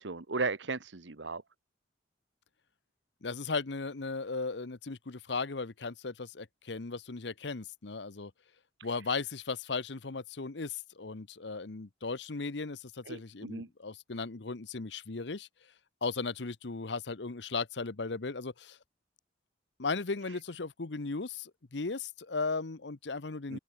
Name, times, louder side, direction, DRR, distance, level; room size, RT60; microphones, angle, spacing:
voice 1, 0.0-1.4 13.1-13.7 23.5-23.6, right 3 dB, 80° right, 1.3 m, -35 dB
voice 2, 3.2-8.3 8.8-15.5 16.0-18.8 19.8-23.6, left 4 dB, 75° left, 1.0 m, -36 dB
open air
head